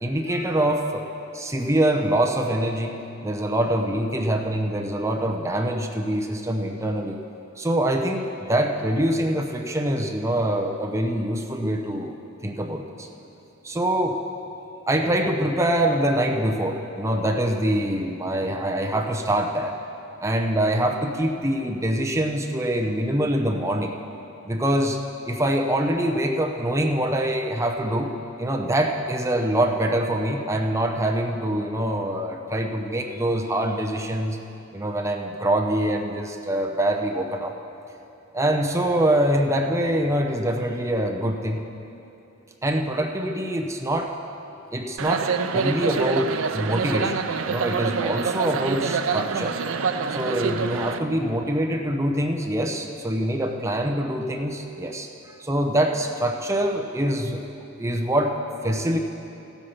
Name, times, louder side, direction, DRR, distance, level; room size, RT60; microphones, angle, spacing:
voice 1, 0.0-1.1 1.3-3.0 3.2-7.2 7.6-13.1 13.6-14.2 14.9-19.7 20.2-23.9 24.4-25.0 25.2-28.1 28.4-34.4 34.7-37.5 38.3-41.6 42.6-44.1 44.7-47.2 47.5-49.6 50.1-57.4 57.8-58.3 58.6-59.0, right 1 dB, 15° right, 3 dB, 0.7 m, -24 dB
sound 1, 45.0-51.0, right 5 dB, 70° right, 0.5 m, -26 dB
15.0 x 8.2 x 5.8 m, 3.0 s
head